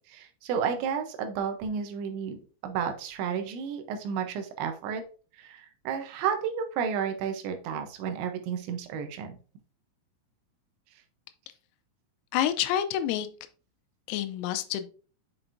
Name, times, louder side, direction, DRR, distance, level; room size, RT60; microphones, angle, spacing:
voice 1, 0.1-5.0 5.4-9.3, right 7 dB, 80° right, 6 dB, 2.8 m, -32 dB
voice 2, 12.3-13.3 14.1-14.9, left 11 dB, 85° left, 10 dB, 3.3 m, -28 dB
7.6 x 5.9 x 2.5 m, 0.38 s
omnidirectional pair, 5.9 m